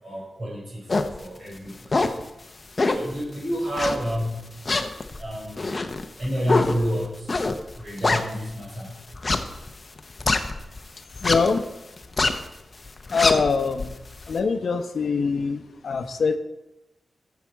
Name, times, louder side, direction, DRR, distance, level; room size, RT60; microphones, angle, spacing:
voice 1, 0.0-2.1 2.9-4.4 4.7-5.9 6.2-7.3 7.8-8.9 12.3-12.4, equal, 50° right, -2 dB, 4.7 m, -30 dB
sound 1, 0.9-1.2 1.7-2.2 2.8-3.1 3.7-4.2 4.6-8.6 9.1-10.8 11.1-11.6 12.0-12.5 12.8-14.3, left 3 dB, 35° left, 0.8 m, -24 dB
voice 2, 11.2-11.6 13.1-13.9 14.3-16.4, left 5 dB, 70° left, 8 dB, 0.8 m, -23 dB
13.0 x 7.4 x 4.7 m, 0.92 s
wide cardioid pair, 115°, 0 cm